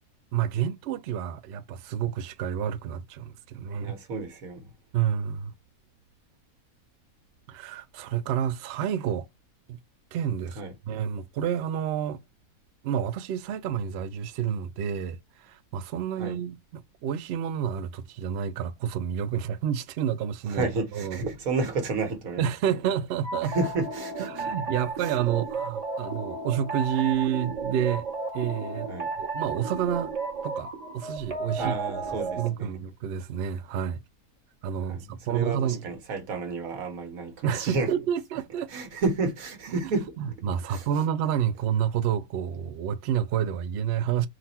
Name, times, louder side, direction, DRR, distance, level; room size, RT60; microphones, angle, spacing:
voice 1, 0.3-4.0 4.9-5.5 7.5-9.3 9.7-9.8 10.1-10.6 10.9-12.2 12.8-20.7 20.9-21.2 22.4-23.5 24.3-28.1 28.3-28.9 29.2-30.1 30.4-31.7 32.4-34.0 34.6-35.8 37.4-38.7 40.4-44.3, right 9 dB, 90° right, 0.5 m, -29 dB
voice 2, 3.8-4.7 10.5-10.7 16.1-16.4 20.5-22.8 23.4-24.4 25.0-25.1 28.9-29.1 31.5-32.8 34.8-37.9 38.7-40.3 40.7-40.9, right 3 dB, 65° right, 1.5 m, -31 dB
sound 1, 23.2-32.5, right 3 dB, 25° right, 1.0 m, -33 dB
3.9 x 2.5 x 4.1 m
omnidirectional pair, 1.6 m